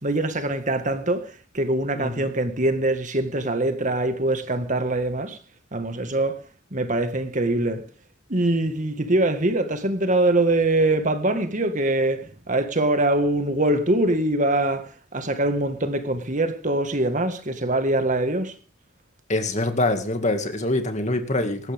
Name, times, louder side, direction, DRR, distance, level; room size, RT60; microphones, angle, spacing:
voice 1, 0.0-5.4 5.7-6.4 6.7-7.8 8.3-18.5, right 2 dB, 40° right, 1.8 m, -23 dB
voice 2, 2.0-2.3 19.3-21.7, left 2 dB, 35° left, 2.2 m, -25 dB
19.0 x 14.5 x 3.6 m
head